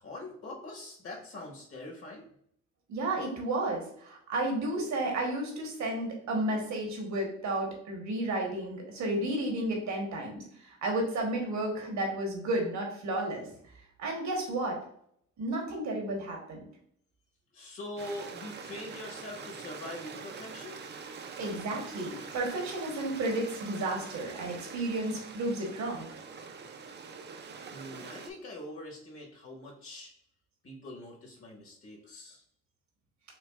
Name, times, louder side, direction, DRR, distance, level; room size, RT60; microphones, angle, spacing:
voice 1, 0.0-2.3 17.5-20.8 27.7-30.1 30.6-32.4, left 1 dB, 50° left, -1 dB, 1.3 m, -43 dB
voice 2, 2.9-13.5 14.0-14.8 15.4-16.7 21.4-26.1, right 1 dB, 65° right, 1 dB, 1.3 m, -32 dB
Stream, 18.0-28.3, right 5 dB, 35° right, 0.5 m, -44 dB
5.9 x 2.2 x 2.4 m, 0.67 s
cardioid pair, 90°, 30 cm